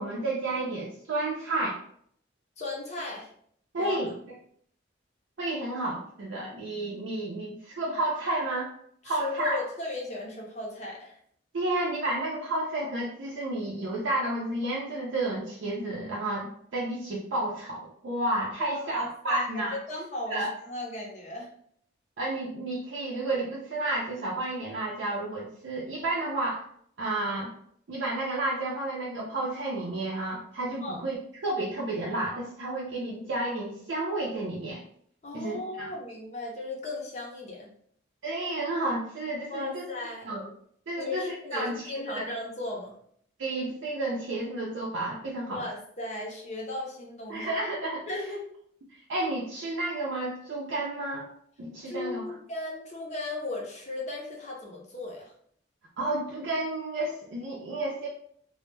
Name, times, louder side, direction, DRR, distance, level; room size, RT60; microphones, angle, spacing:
voice 1, 0.0-1.7 3.7-4.1 5.4-8.7 9.0-9.6 11.5-19.7 20.3-20.5 22.2-26.6 27.0-27.5 27.9-31.2 31.4-34.8 35.3-35.9 38.2-39.9 40.2-40.5 40.9-41.2 41.5-42.3 43.4-45.6 47.3-48.0 48.9-51.3 51.6-52.3 56.0-58.1, right 2 dB, 75° right, -4 dB, 0.4 m, -31 dB
voice 2, 2.6-3.3 3.8-4.0 9.0-11.2 18.6-21.5 30.8-31.0 35.2-37.7 39.5-40.3 40.9-42.9 45.5-47.5 48.1-48.4 51.9-55.3, left 2 dB, 35° left, -1 dB, 0.5 m, -36 dB
2.1 x 2.0 x 3.1 m, 0.64 s
head